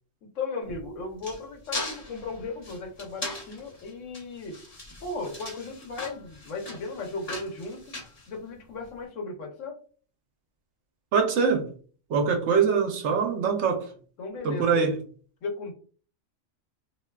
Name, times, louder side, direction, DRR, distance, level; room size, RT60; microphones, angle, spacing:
voice 1, 0.2-4.6 5.0-7.9 8.3-9.8 14.2-14.8 15.4-15.7, left 3 dB, 70° left, 1.1 m, -36 dB
sound 1, 0.6-8.9, left 2 dB, 35° left, 0.7 m, -39 dB
voice 2, 11.1-11.7 12.1-13.9 14.4-15.0, right 5 dB, 65° right, 0.9 m, -23 dB
3.4 x 2.7 x 2.2 m
omnidirectional pair, 1.3 m